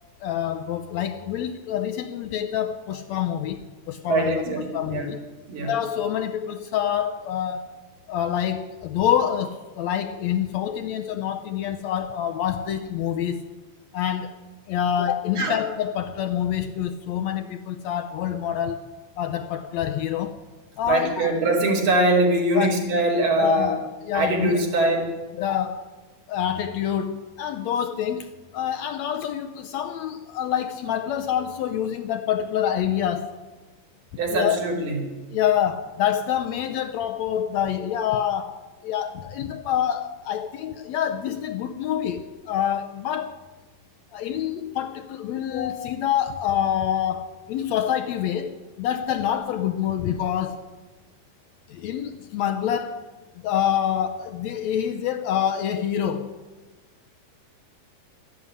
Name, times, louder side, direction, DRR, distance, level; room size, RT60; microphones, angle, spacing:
voice 1, 0.2-4.4 4.7-5.2 5.6-7.7 8.1-13.4 13.9-14.4 14.7-18.9 19.2-20.4 20.8-21.4 22.5-22.8 23.4-24.6 25.3-25.8 26.3-33.4 34.3-34.6 35.3-43.4 44.1-50.6 51.7-53.1 53.4-56.3, left 10 dB, 80° left, 1.6 m, -26 dB
voice 2, 4.1-5.1 5.5-5.7 15.4-15.6 20.8-23.8 24.1-25.1 34.2-35.0, right 2 dB, 85° right, 4.6 m, -22 dB
13.0 x 11.0 x 9.6 m
omnidirectional pair, 3.7 m